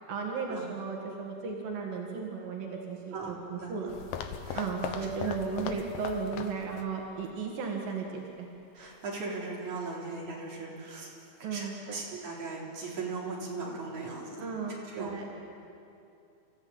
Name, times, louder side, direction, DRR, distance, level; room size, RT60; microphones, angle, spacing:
voice 1, 0.1-3.9 4.5-8.5 11.4-12.0 14.4-15.2, right 5 dB, 90° right, 0 dB, 3.7 m, -35 dB
voice 2, 3.1-3.9 4.4-4.7 5.0-5.3 8.7-11.2 11.5-14.5 14.9-15.1, right 3 dB, 55° right, -4 dB, 5.4 m, -39 dB
sound 1, 3.9-6.9 7.2-7.3 7.9-8.0, left 7 dB, 80° left, 2.8 m, -39 dB
28.5 x 14.5 x 8.9 m, 2.6 s
omnidirectional pair, 3.9 m